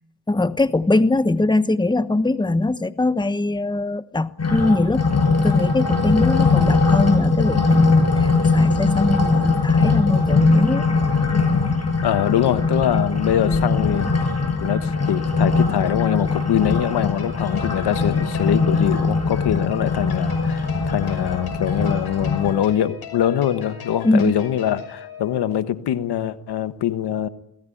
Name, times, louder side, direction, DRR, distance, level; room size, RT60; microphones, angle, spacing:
voice 1, 0.3-5.1 5.4-10.9 24.0-24.3, left 2 dB, 10° left, 1.1 m, -21 dB
sound 1, 4.4-22.5, left 4 dB, 40° left, 7.9 m, -21 dB
voice 2, 12.0-14.1 14.6-27.3, left 10 dB, 90° left, 1.3 m, -23 dB
sound 2, 17.1-25.6, left 7 dB, 70° left, 5.9 m, -39 dB
28.5 x 19.0 x 9.9 m
cardioid pair, 80°, 39 cm